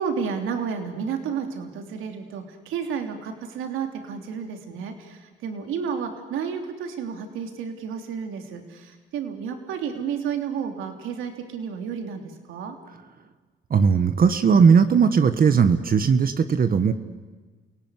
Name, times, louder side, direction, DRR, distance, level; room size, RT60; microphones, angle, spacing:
voice 1, 0.0-12.2 12.5-12.8, right 6 dB, 90° right, 5 dB, 3.1 m, -31 dB
voice 2, 13.7-16.9, right 6 dB, 45° right, 10 dB, 1.5 m, -18 dB
30.0 x 17.5 x 9.7 m, 1.4 s
cardioid pair, 90°, 20 cm